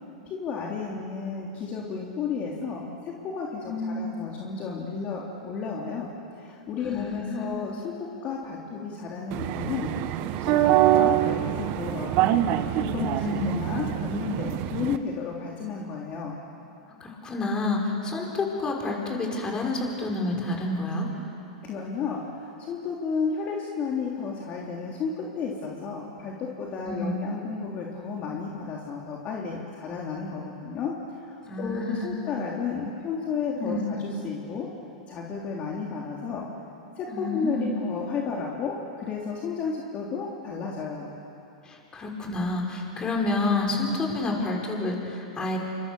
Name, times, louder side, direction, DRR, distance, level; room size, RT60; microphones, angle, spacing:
voice 1, 0.3-9.9 10.4-12.4 12.8-16.3 21.6-34.7 35.1-36.5 37.0-41.1, left 5 dB, 35° left, -2 dB, 3.4 m, -33 dB
voice 2, 3.6-4.0 6.8-7.5 13.1-13.6 17.0-21.1 26.9-27.2 31.5-32.2 33.5-33.9 37.1-37.7 41.7-45.6, left 2 dB, 20° left, 0 dB, 5.9 m, -29 dB
sound 1, 9.3-15.0, right 13 dB, 50° right, 1.3 m, -25 dB
29.5 x 25.5 x 7.1 m, 2.7 s
hypercardioid pair, 100°, 4 cm